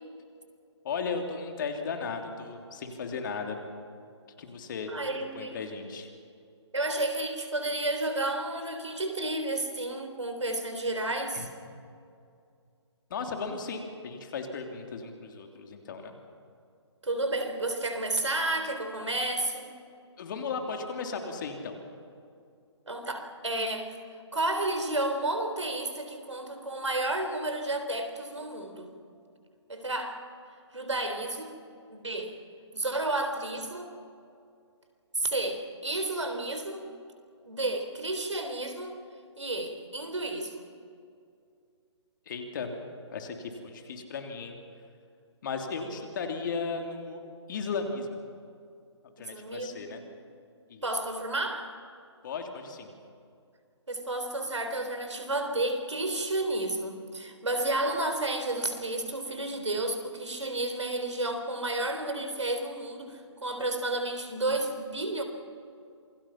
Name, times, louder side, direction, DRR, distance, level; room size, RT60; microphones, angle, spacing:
voice 1, 0.8-3.6 4.4-4.9 5.1-6.1 11.3-11.4 13.1-16.1 20.2-21.8 42.3-42.7 43.1-44.6 45.4-47.2 47.5-48.2 49.2-50.0 50.7-50.8 52.2-52.9, left 5 dB, 45° left, 4 dB, 3.2 m, -35 dB
voice 2, 4.9-5.6 6.7-11.5 17.0-19.7 22.9-23.9 24.3-28.9 29.7-30.2 30.7-31.5 31.9-32.3 32.7-33.9 35.2-36.9 37.5-39.0 39.4-40.6 49.2-50.0 50.8-51.7 53.9-65.2, right 2 dB, 80° right, 6 dB, 3.8 m, -31 dB
27.5 x 22.0 x 5.9 m, 2.4 s
figure-of-eight pair, 140°, 15 cm